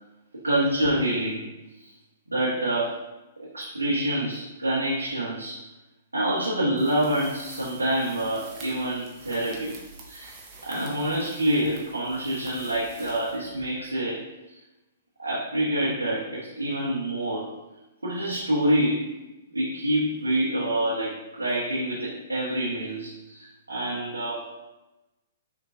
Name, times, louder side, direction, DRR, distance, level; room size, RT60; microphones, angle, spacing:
voice 1, 0.4-1.5 1.8-1.9 2.3-3.0 3.4-5.6 6.1-9.7 10.1-10.4 10.6-14.2 15.2-17.5 18.0-19.0 19.5-24.5, right 1 dB, 80° right, -7 dB, 1.1 m, -27 dB
sound 1, 6.8-13.9, right 3 dB, 25° right, 0.9 m, -47 dB
5.8 x 2.9 x 2.7 m, 1.0 s
figure-of-eight pair, 110°, 0 cm